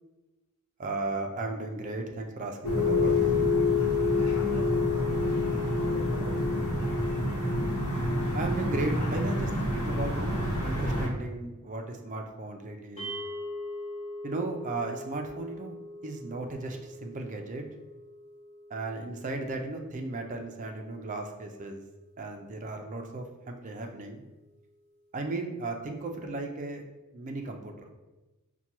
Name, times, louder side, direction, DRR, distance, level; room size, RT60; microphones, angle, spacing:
voice 1, 0.8-3.5 8.3-13.1 14.2-15.7 16.0-17.6 18.7-21.8 22.2-24.2 25.1-26.8 27.1-27.9, right 2 dB, 35° right, 3 dB, 0.4 m, -35 dB
sound 1, 2.6-11.1, left 2 dB, 85° left, 0.9 m, -27 dB
voice 2, 4.3-6.6, left 4 dB, 60° left, 4 dB, 0.5 m, -41 dB
sound 2, 13.0-23.3, left 1 dB, 30° left, 0.8 m, -44 dB
5.6 x 2.2 x 2.9 m, 1.1 s
head